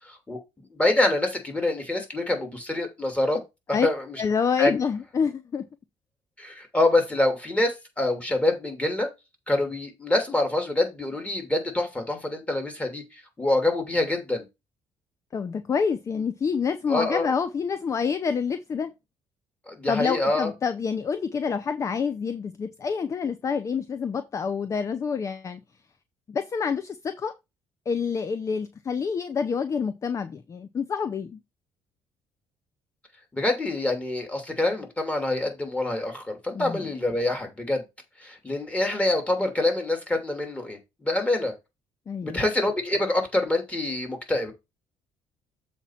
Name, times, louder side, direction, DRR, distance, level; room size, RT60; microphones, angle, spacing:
voice 1, 0.1-0.4 0.7-3.4 3.8-4.2 4.6-4.7 6.4-9.1 9.5-14.4 16.9-17.3 19.7-20.5 33.3-37.8 38.2-41.5 42.2-44.5, left 2 dB, 15° left, 2.8 m, -26 dB
voice 2, 4.2-5.7 15.3-18.9 19.9-25.6 26.3-27.3 27.9-31.4 36.5-36.9 42.1-42.4, left 6 dB, 35° left, 0.6 m, -27 dB
7.3 x 4.3 x 5.7 m
cardioid pair, 115°, 9 cm